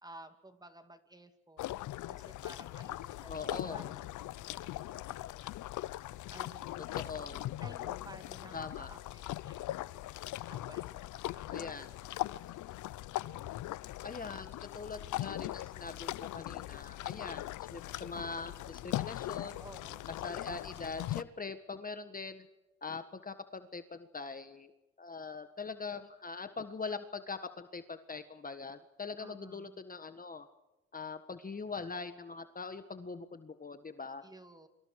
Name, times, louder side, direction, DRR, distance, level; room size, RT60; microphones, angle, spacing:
voice 1, 0.0-1.8 2.1-5.4 6.3-6.9 7.6-9.8 10.5-11.0 11.3-12.0 19.6-20.2 29.2-29.8 34.2-34.7, right 1 dB, 15° right, 8 dB, 2.6 m, -54 dB
sound 1, 1.6-21.2, left 15 dB, 80° left, 0.7 m, -40 dB
voice 2, 3.3-3.9 7.0-7.5 8.5-8.9 11.5-11.9 14.0-19.6 20.2-22.5 22.8-24.7 25.0-30.5 30.9-34.2, left 4 dB, 30° left, 9 dB, 1.5 m, -42 dB
29.0 x 24.5 x 4.8 m, 1.0 s
cardioid pair, 90°, 30 cm